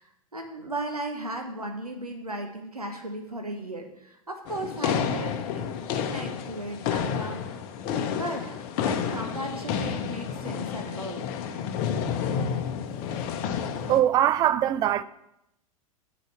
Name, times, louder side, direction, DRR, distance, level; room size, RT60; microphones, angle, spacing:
voice 1, 0.0-7.6 8.1-11.3, right 1 dB, 85° right, 1.2 m, -36 dB
sound 1, 4.5-14.0, left 7 dB, 40° left, 0.9 m, -30 dB
voice 2, 13.9-15.0, right 11 dB, 20° right, 0.4 m, -22 dB
8.1 x 5.0 x 7.1 m
figure-of-eight pair, 95°, 19 cm